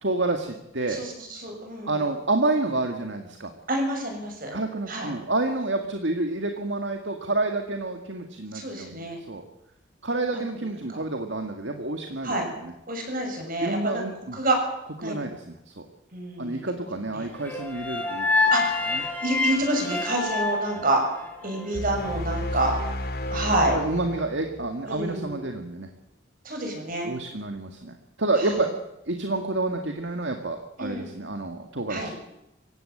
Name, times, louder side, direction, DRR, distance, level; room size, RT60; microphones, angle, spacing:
voice 1, 0.0-1.0 1.9-3.5 4.5-9.4 10.0-12.7 13.6-14.4 15.0-15.8 16.4-18.5 18.9-19.0 20.8-20.9 23.7-25.9 27.0-28.7 29.1-32.0, right 2 dB, 60° right, 5 dB, 2.0 m, -29 dB
voice 2, 0.9-2.0 3.7-4.6 4.9-5.1 8.5-9.2 10.9-11.0 12.2-12.5 12.9-14.0 14.3-14.6 15.0-15.2 16.1-16.9 17.1-17.3 18.5-21.0 21.4-22.8 23.3-23.8 24.9-25.3 26.5-27.1 28.4-28.5 30.8-31.1 31.9-32.1, right 2 dB, 45° right, 3 dB, 6.9 m, -28 dB
sound 1, 17.4-21.7, left 3 dB, 10° left, 3.6 m, -27 dB
sound 2, 21.7-25.1, left 1 dB, 50° left, 2.5 m, -32 dB
24.0 x 16.5 x 8.8 m, 0.87 s
head